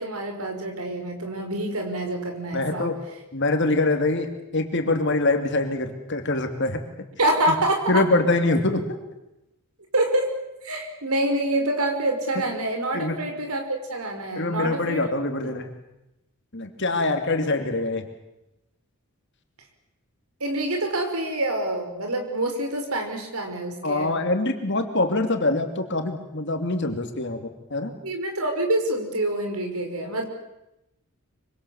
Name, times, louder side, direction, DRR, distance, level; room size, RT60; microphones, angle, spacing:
voice 1, 0.0-2.9 7.2-8.1 9.9-10.4 10.6-15.1 20.4-24.1 28.0-30.2, right 1 dB, 80° right, 4 dB, 5.5 m, -26 dB
voice 2, 2.5-3.0 3.3-6.8 7.5-7.6 7.9-9.0 12.9-13.2 14.3-15.7 16.5-18.1 23.8-27.9, left 2 dB, 55° left, 6 dB, 2.8 m, -24 dB
25.0 x 25.0 x 7.2 m, 0.91 s
head